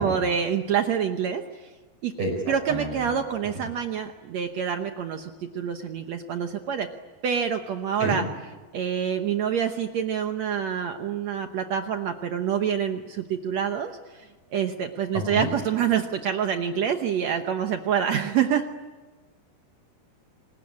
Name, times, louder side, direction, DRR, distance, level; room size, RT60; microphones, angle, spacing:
voice 1, 0.0-1.4 2.0-2.1 2.5-6.9 7.2-8.2 8.7-14.3 14.5-18.7, right 8 dB, 80° right, 6 dB, 1.5 m, -26 dB
voice 2, 2.2-2.9 8.0-8.2 15.1-15.5, right 1 dB, 35° right, 4 dB, 5.2 m, -29 dB
27.0 x 20.5 x 9.8 m, 1.3 s
omnidirectional pair, 4.6 m